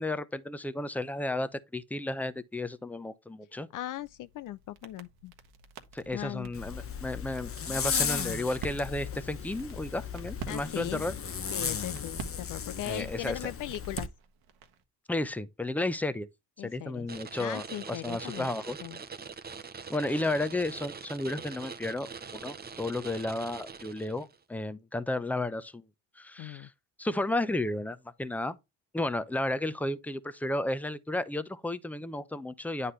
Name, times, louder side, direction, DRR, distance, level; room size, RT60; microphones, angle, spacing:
voice 1, 0.0-3.7 5.9-11.1 12.9-13.5 15.1-16.3 16.6-18.8 19.9-25.8 26.2-26.7 27.0-28.6 28.9-32.9, left 2 dB, 5° left, 0.7 m, -33 dB
voice 2, 3.7-5.3 6.1-6.5 10.5-11.0 11.5-14.1 16.6-17.1 17.4-18.5 18.8-19.0 26.4-26.7, left 13 dB, 55° left, 0.5 m, -38 dB
sound 1, 4.0-14.8, right 6 dB, 70° right, 1.2 m, -47 dB
Zipper (clothing), 6.5-14.1, left 7 dB, 35° left, 0.9 m, -35 dB
sound 2, 17.1-24.4, right 5 dB, 25° right, 0.8 m, -43 dB
9.4 x 4.1 x 3.2 m
supercardioid pair, 70°, 39 cm